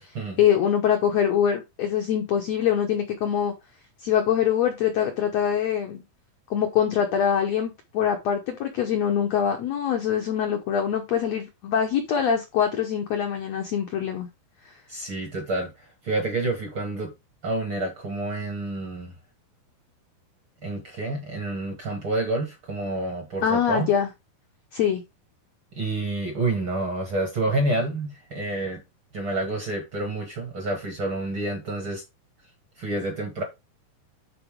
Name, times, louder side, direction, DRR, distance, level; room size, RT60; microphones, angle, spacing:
voice 1, 0.4-3.5 4.0-6.0 6.5-14.3 23.4-24.1 24.7-25.0, left 8 dB, 75° left, 1.5 m, -24 dB
voice 2, 14.9-15.7 16.0-17.1 17.4-19.1 20.6-23.9 25.7-28.8 29.1-32.0 32.8-33.4, right 2 dB, 50° right, 1.6 m, -28 dB
11.0 x 4.0 x 3.6 m
omnidirectional pair, 4.4 m